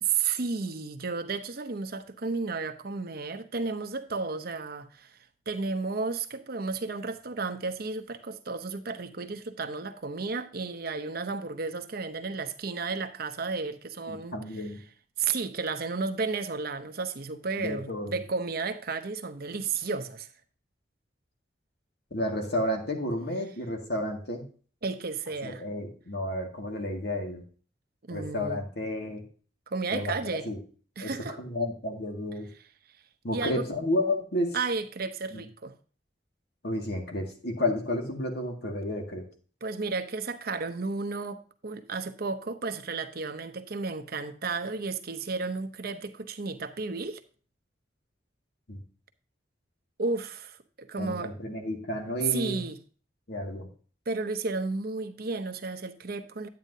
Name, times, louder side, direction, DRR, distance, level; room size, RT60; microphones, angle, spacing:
voice 1, 0.0-5.2 5.5-14.4 15.2-20.3 24.8-25.6 28.0-28.6 29.7-30.5 31.0-31.4 33.3-33.6 34.5-35.7 39.6-47.2 50.0-51.3 52.3-52.8 54.1-56.5, right 4 dB, 55° right, 0.8 m, -33 dB
voice 2, 14.1-14.8 17.6-18.2 22.1-24.4 25.4-27.4 28.1-29.2 29.9-30.6 31.0-31.1 31.4-32.5 33.2-34.6 35.3-35.4 36.6-39.3 48.7-48.8 51.0-52.6 53.3-53.7, left 1 dB, 65° left, 2.0 m, -31 dB
9.4 x 9.2 x 2.7 m
head